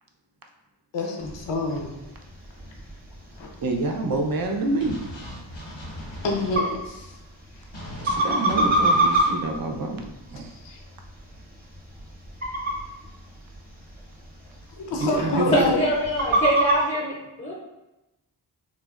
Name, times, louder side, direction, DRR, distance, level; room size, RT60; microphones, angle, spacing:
voice 1, 0.9-1.9 3.4-3.5 6.2-7.1 10.6-10.8 14.8-15.8, left 2 dB, 75° left, 1 dB, 0.6 m, -28 dB
sound 1, 1.2-16.8, right 1 dB, 20° right, 0.8 m, -29 dB
voice 2, 3.6-5.0 8.0-10.5 14.9-15.7, right 2 dB, 55° right, 3 dB, 0.5 m, -27 dB
sound 2, 4.8-6.5 7.7-9.3, left 1 dB, 90° left, 1.0 m, -38 dB
voice 3, 15.5-17.5, equal, 15° left, -3 dB, 0.5 m, -24 dB
3.2 x 2.1 x 2.3 m, 0.97 s
wide cardioid pair, 50°, 44 cm